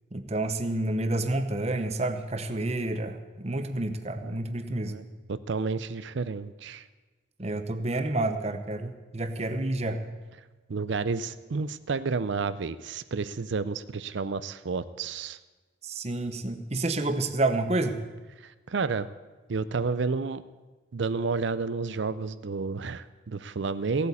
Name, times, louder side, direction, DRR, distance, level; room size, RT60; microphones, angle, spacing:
voice 1, 0.1-4.9 7.4-10.0 15.8-18.0, right 2 dB, 35° right, 8 dB, 0.9 m, -29 dB
voice 2, 4.8-6.8 10.7-15.4 18.4-19.1 19.5-20.4 20.9-24.1, right 4 dB, 65° right, 14 dB, 0.5 m, -31 dB
16.5 x 8.3 x 8.4 m, 1.3 s
head